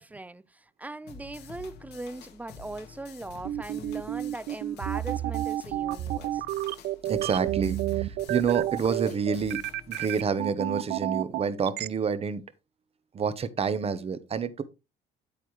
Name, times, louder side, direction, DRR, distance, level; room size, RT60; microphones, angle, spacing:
voice 1, 0.0-6.4, right 2 dB, 10° right, 0.4 m, -40 dB
sound 1, 1.1-10.2, left 4 dB, 80° left, 1.8 m, -48 dB
sound 2, 3.4-11.9, right 14 dB, 75° right, 0.5 m, -30 dB
voice 2, 7.1-12.4 13.1-14.6, right 6 dB, 35° right, 1.0 m, -28 dB
8.9 x 8.4 x 3.2 m
cardioid pair, 110°, 17 cm